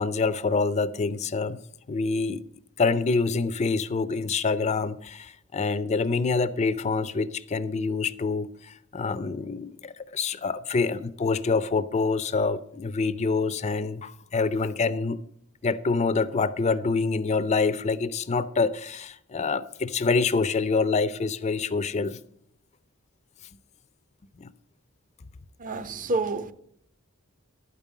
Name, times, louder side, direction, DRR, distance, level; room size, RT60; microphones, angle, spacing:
voice 1, 0.0-1.6 1.9-2.4 2.8-8.5 8.9-15.2 15.6-22.2 24.4-24.5, left 4 dB, 35° left, 0.4 m, -26 dB
voice 2, 25.6-26.5, right 3 dB, 40° right, 0.6 m, -28 dB
12.0 x 5.3 x 7.3 m
head